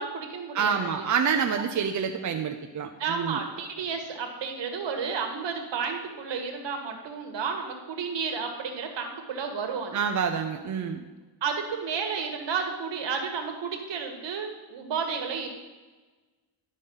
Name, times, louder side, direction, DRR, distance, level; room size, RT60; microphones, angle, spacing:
voice 1, 0.0-1.1 1.6-1.7 3.0-10.0 11.4-15.5, right 5 dB, 65° right, 4 dB, 1.8 m, -32 dB
voice 2, 0.5-3.4 9.9-11.0, right 6 dB, 40° right, 4 dB, 0.7 m, -27 dB
11.5 x 5.2 x 5.5 m, 1.2 s
cardioid pair, 105°, 47 cm